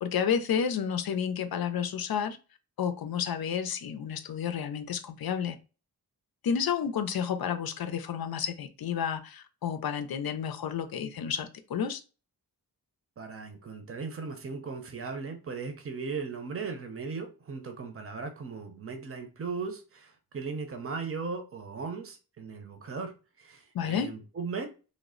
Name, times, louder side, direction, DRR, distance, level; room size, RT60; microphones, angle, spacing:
voice 1, 0.0-2.4 2.8-5.6 6.4-12.0 23.7-24.1, left 7 dB, 70° left, 0.5 m, -31 dB
voice 2, 13.2-24.7, right 4 dB, 35° right, 0.6 m, -37 dB
3.2 x 2.0 x 3.7 m
wide cardioid pair, 100°, 38 cm